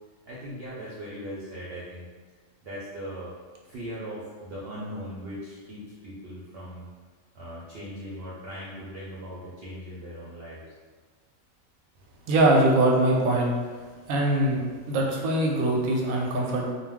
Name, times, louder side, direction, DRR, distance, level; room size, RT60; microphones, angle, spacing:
voice 1, 0.3-2.1 2.6-3.3 3.6-6.9 7.3-10.7, equal, 60° right, -8 dB, 0.7 m, -39 dB
voice 2, 12.3-13.5 14.1-14.6 14.9-16.7, right 1 dB, 85° right, -1 dB, 1.0 m, -22 dB
2.3 x 2.2 x 3.4 m, 1.4 s
omnidirectional pair, 1.4 m